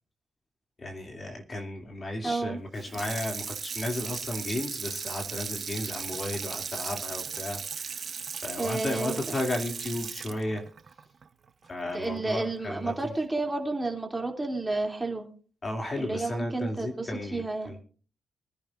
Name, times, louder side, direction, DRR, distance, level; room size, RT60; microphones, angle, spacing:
voice 1, 0.8-8.1 8.4-10.6 11.7-13.1 15.6-17.8, left 1 dB, 35° left, 2 dB, 2.7 m, -34 dB
voice 2, 2.2-2.6 8.6-9.2 11.9-15.2 16.0-17.7, right 2 dB, 15° right, 2 dB, 2.9 m, -31 dB
Water tap faucet / Sink (filling or washing), 2.7-11.9 12.3-12.4, right 6 dB, 50° right, 1.0 m, -37 dB
24.0 x 10.5 x 2.6 m, 0.40 s
cardioid pair, 85°, 0 cm